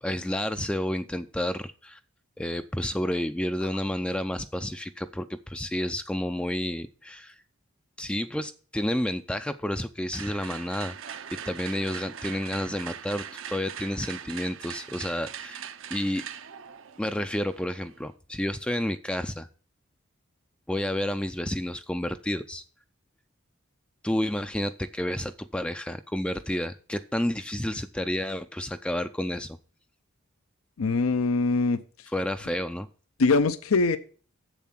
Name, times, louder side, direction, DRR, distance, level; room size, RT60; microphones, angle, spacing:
voice 1, 0.0-2.0 2.4-7.4 8.0-15.6 15.9-16.2 17.0-19.5 20.7-22.6 24.0-29.6 32.1-32.9, left 1 dB, 5° left, 10 dB, 0.3 m, -30 dB
sound 1, 10.1-18.1, right 8 dB, 65° right, 0.6 m, -41 dB
voice 2, 30.8-31.8 33.2-34.0, left 3 dB, 80° left, 12 dB, 0.6 m, -22 dB
7.5 x 7.1 x 5.8 m, 0.41 s
head